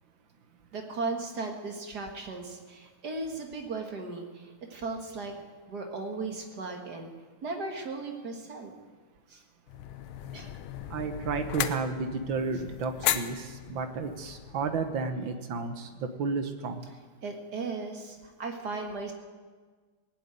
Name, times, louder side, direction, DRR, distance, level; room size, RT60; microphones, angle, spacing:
voice 1, 0.7-5.3 5.7-7.1 7.4-8.7 9.3-9.4 10.3-10.5 17.2-19.1, right 3 dB, 50° right, 3 dB, 2.2 m, -36 dB
sound 1, 9.7-15.1, left 11 dB, 80° left, 1.5 m, -36 dB
voice 2, 10.9-16.9, right 4 dB, 70° right, 8 dB, 1.9 m, -32 dB
19.0 x 7.7 x 9.1 m, 1.4 s
omnidirectional pair, 2.3 m